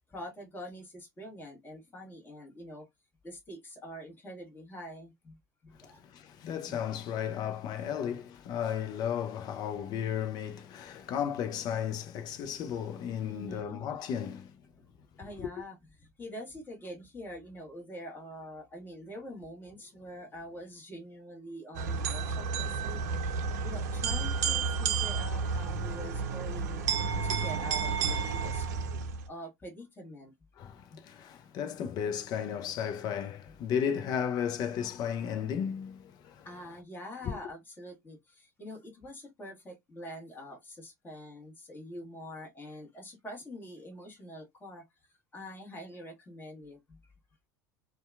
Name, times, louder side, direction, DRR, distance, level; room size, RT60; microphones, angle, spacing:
voice 1, 0.1-2.9 3.2-6.0 6.7-6.8 13.3-13.8 15.2-23.0 23.6-26.8 27.2-28.7 29.3-30.3 30.9-31.0 36.4-44.8 45.3-47.0, equal, 20° left, 1.3 m, -45 dB
voice 2, 5.8-14.6 15.4-15.5 30.6-36.5 37.2-37.4, left 8 dB, 45° left, 0.5 m, -34 dB
sound 1, 21.7-29.3, right 5 dB, 70° right, 0.6 m, -31 dB
2.7 x 2.3 x 2.4 m
hypercardioid pair, 80°, 9 cm